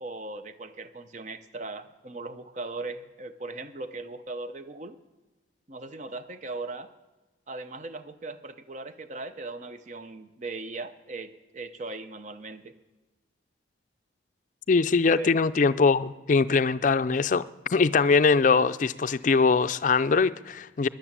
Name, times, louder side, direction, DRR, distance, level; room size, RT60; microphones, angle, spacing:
voice 1, 0.0-5.0 5.7-6.9 7.5-12.7 15.1-15.3, right 3 dB, 40° right, 10 dB, 0.7 m, -38 dB
voice 2, 14.7-20.9, left 4 dB, 45° left, 13 dB, 0.4 m, -22 dB
16.5 x 10.5 x 7.4 m, 1.2 s
head